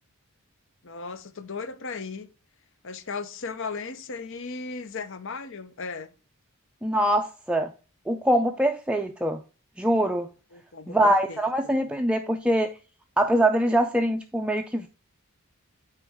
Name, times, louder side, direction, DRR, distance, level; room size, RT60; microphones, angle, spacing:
voice 1, 0.8-2.3 2.8-6.1 10.5-11.4 11.6-11.8, left 4 dB, 60° left, 0.8 m, -36 dB
voice 2, 6.8-7.7 8.1-9.4 9.8-10.3 10.9-12.7 13.2-14.9, right 1 dB, 5° right, 0.4 m, -23 dB
9.2 x 4.4 x 3.6 m
head